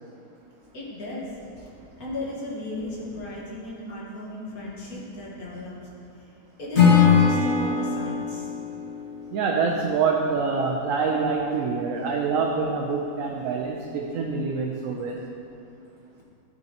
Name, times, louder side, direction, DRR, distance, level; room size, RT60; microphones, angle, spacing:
voice 1, 0.7-1.7 2.0-6.3 6.6-8.5, left 1 dB, 70° left, -6 dB, 2.1 m, -36 dB
Acoustic guitar / Strum, 6.7-9.9, left 6 dB, 45° left, 1.8 m, -21 dB
voice 2, 9.3-15.2, right 5 dB, 65° right, 0 dB, 1.0 m, -26 dB
12.0 x 6.5 x 2.9 m, 2.6 s
omnidirectional pair, 1.6 m